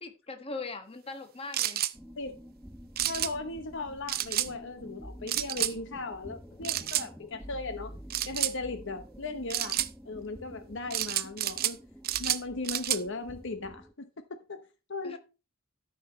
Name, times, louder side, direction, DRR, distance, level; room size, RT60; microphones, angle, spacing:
voice 1, 0.0-1.8 15.0-15.2, left 3 dB, 25° left, 1.4 m, -40 dB
sound 1, 1.5-1.9 3.0-3.3 4.1-4.5 5.3-5.7 6.6-7.1 8.1-8.5 9.5-9.9 10.9-11.8 12.0-13.0, right 13 dB, 45° right, 0.6 m, -30 dB
sound 2, 1.9-13.9, equal, ahead, 0.6 m, -48 dB
voice 2, 3.1-8.0 8.3-9.8 10.1-11.8 12.2-14.2 14.5-14.6 14.9-15.2, left 3 dB, 60° left, 0.9 m, -37 dB
13.0 x 5.8 x 4.2 m
head